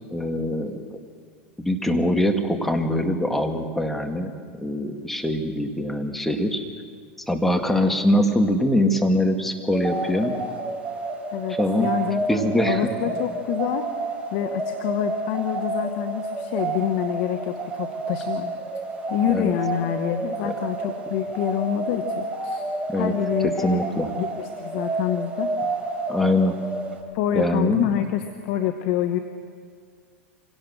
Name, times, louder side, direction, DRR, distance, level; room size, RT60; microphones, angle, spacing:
voice 1, 0.1-1.0 1.6-4.3 4.6-6.6 7.3-10.3 11.6-11.9 12.3-12.9 19.3-19.5 20.4-20.5 22.9-23.1 23.4-24.1 26.1-26.6 27.3-27.9, left 1 dB, 5° left, 4 dB, 2.1 m, -23 dB
sound 1, 9.7-27.0, right 3 dB, 15° right, 4.9 m, -30 dB
voice 2, 11.3-12.4 12.7-13.9 14.3-18.5 19.1-22.6 22.9-23.8 24.2-25.5 27.1-29.2, left 10 dB, 60° left, 7 dB, 1.2 m, -27 dB
25.0 x 17.0 x 6.4 m, 2.1 s
hypercardioid pair, 95°, 6 cm